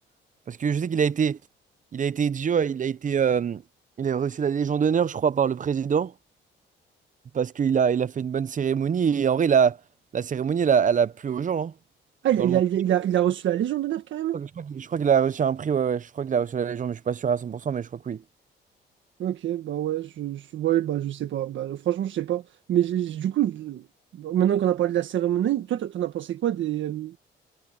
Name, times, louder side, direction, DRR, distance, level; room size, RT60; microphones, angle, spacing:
voice 1, 0.5-1.4 1.9-3.6 4.0-6.1 7.3-9.8 10.1-11.7 12.4-12.6 14.3-18.2, right 7 dB, 40° right, 0.8 m, -24 dB
voice 2, 12.2-14.4 19.2-22.4 22.7-23.8 24.2-27.1, right 11 dB, 70° right, 1.6 m, -25 dB
cardioid pair, 90°, 20 cm